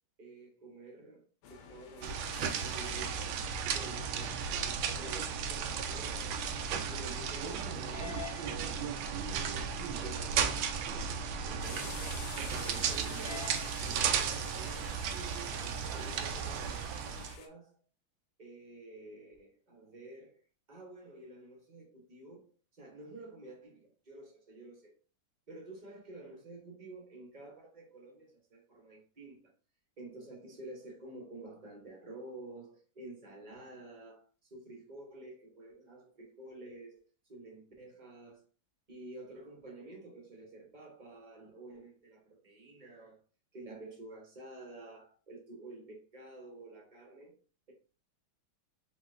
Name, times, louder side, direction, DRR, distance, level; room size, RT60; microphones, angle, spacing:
voice 1, 0.2-2.3 2.6-3.4 3.7-6.4 6.9-8.9 10.0-11.0 11.4-15.0 15.5-17.8 18.4-20.4 20.7-22.5 22.8-24.9 25.5-29.5 30.0-37.0 37.3-38.4 38.9-43.2 43.5-47.3, right 2 dB, 25° right, 1.1 m, -50 dB
sound 1, 1.4-17.5, left 7 dB, 80° left, 1.5 m, -50 dB
sound 2, 2.0-17.4, right 7 dB, 75° right, 1.3 m, -35 dB
4.4 x 4.1 x 2.6 m
omnidirectional pair, 2.3 m